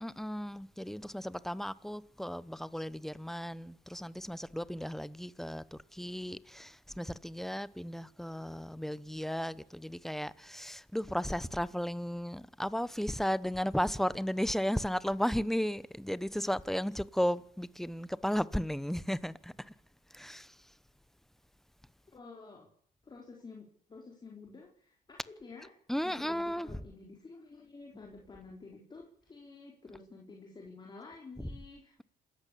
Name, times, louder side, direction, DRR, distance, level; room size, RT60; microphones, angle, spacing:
voice 1, 0.0-19.7 20.1-20.5 25.9-26.8 31.4-31.6, equal, ahead, 0.9 m, -35 dB
voice 2, 22.1-22.7 23.0-25.7 26.0-31.9, left 3 dB, 25° left, 4.1 m, -50 dB
27.0 x 14.5 x 8.5 m
cardioid pair, 110°, 17 cm